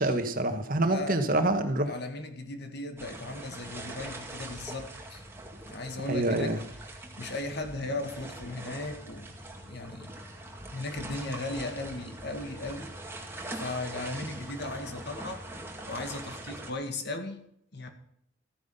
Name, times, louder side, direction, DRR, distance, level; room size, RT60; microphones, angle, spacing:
voice 1, 0.0-1.9 6.1-6.6, right 2 dB, 45° right, 8 dB, 1.5 m, -26 dB
voice 2, 0.9-1.4 1.9-5.2 5.7-6.6 7.2-10.1 10.7-12.9 13.5-15.4 15.9-17.4 17.7-17.9, left 2 dB, 55° left, 6 dB, 2.0 m, -37 dB
sound 1, 3.0-16.7, right 1 dB, 10° right, 2.1 m, -42 dB
14.5 x 9.5 x 5.5 m, 0.70 s
head